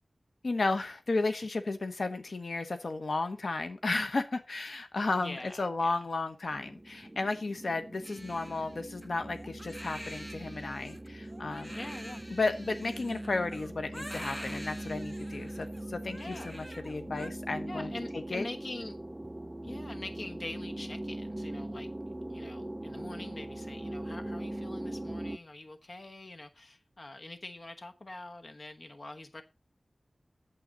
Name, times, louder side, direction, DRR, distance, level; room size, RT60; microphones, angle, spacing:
voice 1, 0.4-11.8 12.3-17.9 18.3-18.4, left 3 dB, 80° left, 1.1 m, -33 dB
voice 2, 5.2-6.0 11.7-12.2 16.2-16.5 17.7-19.0 19.6-21.9 22.3-29.4, left 2 dB, 55° left, 1.0 m, -44 dB
sound 1, 6.5-25.4, right 1 dB, 20° right, 0.5 m, -41 dB
Crying sobbing, 8.0-17.3, equal, 5° left, 1.2 m, -47 dB
8.8 x 7.8 x 5.3 m
wide cardioid pair, 75°, 0 cm